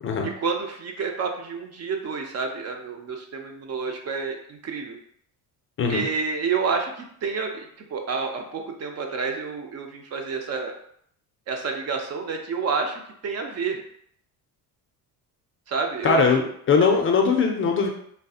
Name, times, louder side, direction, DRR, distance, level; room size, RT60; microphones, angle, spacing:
voice 1, 0.2-5.0 5.9-10.7 11.5-13.8 15.7-16.4 16.8-16.9, right 5 dB, 40° right, 3 dB, 0.4 m, -29 dB
voice 2, 16.0-17.9, left 5 dB, 35° left, 2 dB, 0.4 m, -20 dB
3.3 x 2.6 x 2.3 m, 0.66 s
cardioid pair, 120°, 40 cm